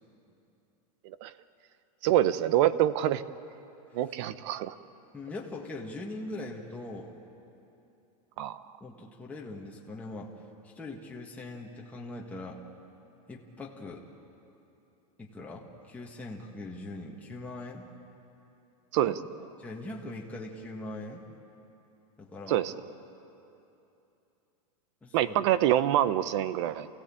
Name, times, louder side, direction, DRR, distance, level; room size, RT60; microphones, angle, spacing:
voice 1, 2.0-3.2 3.9-4.7 8.4-8.6 18.9-19.2 22.5-22.7 25.1-26.9, right 12 dB, 50° right, 15 dB, 0.8 m, -26 dB
voice 2, 5.1-7.2 8.8-10.3 10.6-12.6 13.3-14.1 15.2-17.9 19.0-19.2 19.6-21.3 22.2-22.7 25.0-25.4, left 2 dB, 5° left, -2 dB, 1.7 m, -41 dB
28.5 x 16.5 x 8.7 m, 2.9 s
supercardioid pair, 160°, 19 cm